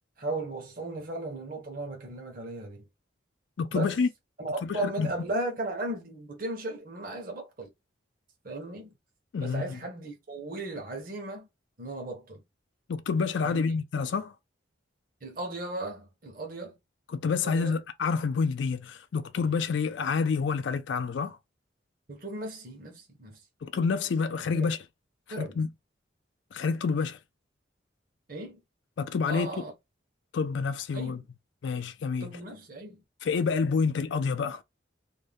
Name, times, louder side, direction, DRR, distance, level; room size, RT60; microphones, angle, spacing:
voice 1, 0.2-2.8 3.7-4.0 4.4-7.7 8.4-8.9 9.4-11.5 11.8-12.4 13.4-13.6 15.2-16.8 17.4-17.8 22.1-23.4 24.5-24.7 25.3-25.5 28.3-28.6 29.3-29.7 30.9-31.2 32.2-33.0, right 2 dB, 45° right, 0.9 m, -36 dB
voice 2, 3.6-4.1 4.6-5.1 9.3-9.8 12.9-14.3 17.1-21.4 23.6-24.8 25.4-25.7 26.5-27.2 29.0-29.7 30.3-31.2 31.6-32.4 33.2-34.6, left 5 dB, 70° left, 0.4 m, -28 dB
2.6 x 2.2 x 3.4 m
head